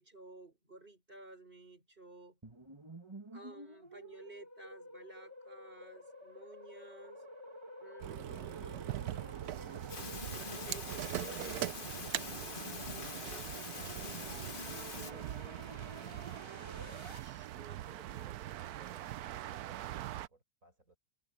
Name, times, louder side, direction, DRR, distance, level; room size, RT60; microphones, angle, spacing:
voice 1, 0.0-2.4 3.3-7.2 7.8-9.1 10.3-15.4 16.2-18.3, right 2 dB, 35° right, 6.0 m, -55 dB
sound 1, 2.4-17.2, right 1 dB, 20° right, 2.0 m, -50 dB
sound 2, 8.0-20.3, right 13 dB, 80° right, 1.2 m, -42 dB
sound 3, 9.9-15.1, left 5 dB, 35° left, 1.2 m, -45 dB
voice 2, 18.0-21.0, right 2 dB, 60° right, 6.7 m, -64 dB
omnidirectional pair, 1.6 m